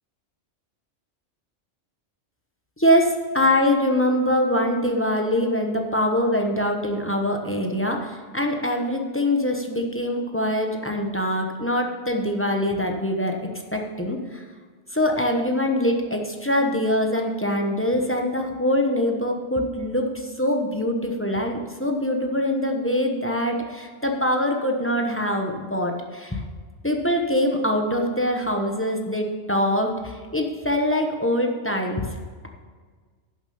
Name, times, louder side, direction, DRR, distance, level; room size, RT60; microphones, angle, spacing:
voice 1, 2.8-13.4 13.7-14.4 14.9-26.4 26.8-32.1, left 1 dB, 10° left, 2 dB, 1.0 m, -23 dB
11.0 x 7.1 x 6.8 m, 1.6 s
omnidirectional pair, 1.3 m